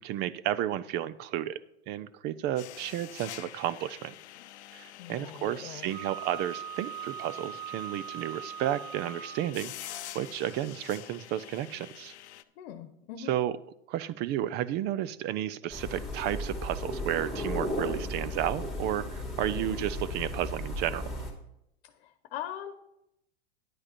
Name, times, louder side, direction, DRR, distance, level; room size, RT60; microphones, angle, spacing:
voice 1, 0.0-1.6 1.9-4.1 4.7-12.1 13.3-13.5 13.9-21.0, right 12 dB, 30° right, 18 dB, 0.4 m, -32 dB
sound 1, 2.6-12.4, left 13 dB, 80° left, 0.7 m, -47 dB
voice 2, 5.0-5.9 12.6-13.3 21.8-22.7, left 10 dB, 60° left, 10 dB, 1.1 m, -41 dB
Wind instrument woodwind instrument, 5.9-9.5, right 10 dB, 70° right, 1.5 m, -41 dB
sound 2, 15.7-21.3, left 1 dB, ahead, 2.3 m, -35 dB
10.0 x 8.7 x 4.4 m, 0.81 s
hypercardioid pair, 125°, 33 cm